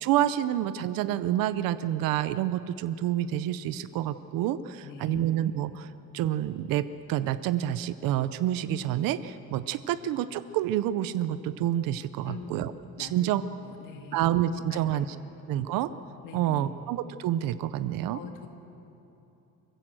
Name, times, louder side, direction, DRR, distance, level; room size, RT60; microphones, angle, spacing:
voice 1, 0.0-6.8 7.1-12.7 13.0-13.4 14.1-15.0 15.5-15.9 16.3-18.2, right 12 dB, 85° right, 13 dB, 0.7 m, -28 dB
voice 2, 4.8-5.3 12.3-12.6 13.0-13.3 13.6-14.2 14.7-15.2 16.2-16.7 18.1-18.5, left 6 dB, 70° left, 5 dB, 2.1 m, -43 dB
24.5 x 15.5 x 7.6 m, 2.9 s
cardioid pair, 180°, 33 cm